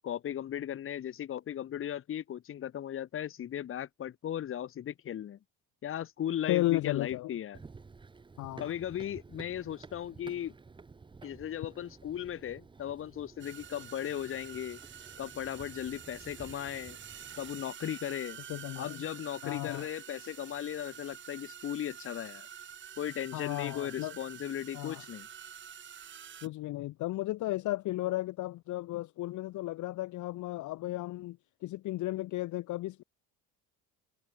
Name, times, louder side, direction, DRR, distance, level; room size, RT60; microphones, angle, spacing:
voice 1, 0.0-5.4 5.8-7.6 8.6-10.5 11.2-14.8 15.2-17.0 17.4-18.4 18.8-22.5 23.0-25.3, left 10 dB, 30° left, 1.4 m, -37 dB
voice 2, 6.5-7.4 8.4-8.7 18.5-19.0 19.4-19.9 23.3-24.2 24.7-25.0 26.4-33.0, left 17 dB, 50° left, 0.9 m, -34 dB
Run, 7.5-17.6, right 4 dB, 10° right, 1.1 m, -52 dB
sound 1, 13.4-26.5, right 9 dB, 30° right, 1.6 m, -48 dB
cardioid pair, 165°, 39 cm